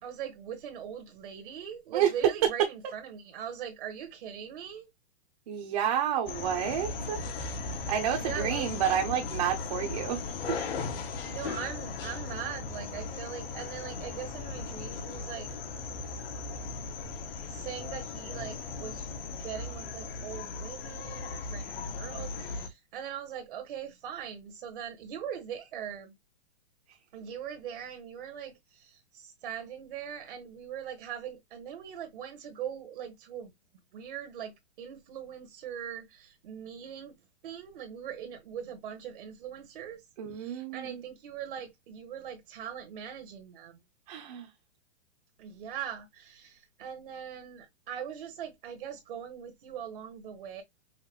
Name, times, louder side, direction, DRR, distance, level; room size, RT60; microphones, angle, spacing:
voice 1, 0.0-4.9 8.2-8.7 11.2-15.5 17.5-19.1 19.4-26.1 27.1-33.5 33.9-37.2 37.4-40.0 40.3-43.8 45.4-50.6, right 9 dB, 55° right, 1.2 m, -41 dB
voice 2, 1.9-2.3 2.8-2.9 5.5-7.2 7.9-10.2 10.5-10.7 40.2-41.0 44.1-44.5, right 9 dB, 35° right, 0.9 m, -29 dB
sound 1, 6.3-22.7, left 4 dB, 60° left, 1.3 m, -37 dB
5.7 x 2.5 x 3.2 m
hypercardioid pair, 170°, 32 cm